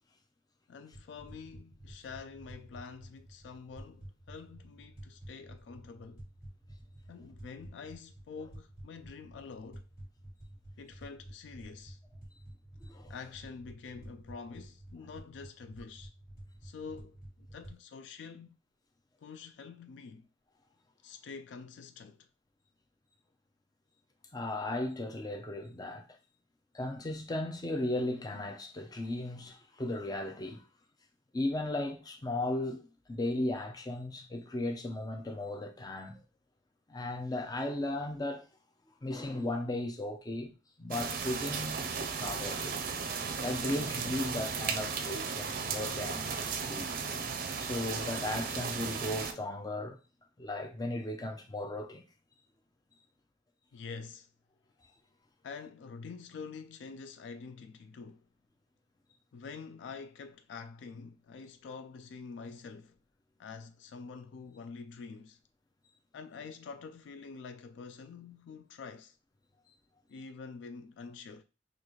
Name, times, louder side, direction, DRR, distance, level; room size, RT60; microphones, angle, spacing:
voice 1, 0.7-6.2 7.1-9.9 10.8-12.0 13.1-16.1 16.6-18.6 19.2-20.3 21.0-22.3 53.7-54.3 55.4-58.3 59.3-63.0 63.4-65.4 66.1-69.2 70.1-71.4, left 5 dB, 75° left, 0.3 m, -47 dB
sound 1, 0.9-17.7, right 1 dB, 55° left, 1.8 m, -51 dB
voice 2, 12.8-13.1 24.3-26.1 26.7-30.6 31.3-36.2 36.9-38.5 39.0-40.5 40.8-42.8 43.4-46.9 47.6-50.0 50.4-52.0, left 1 dB, 20° left, 0.5 m, -36 dB
sound 2, 40.9-49.3, right 5 dB, 50° right, 0.5 m, -35 dB
3.9 x 2.5 x 3.1 m
head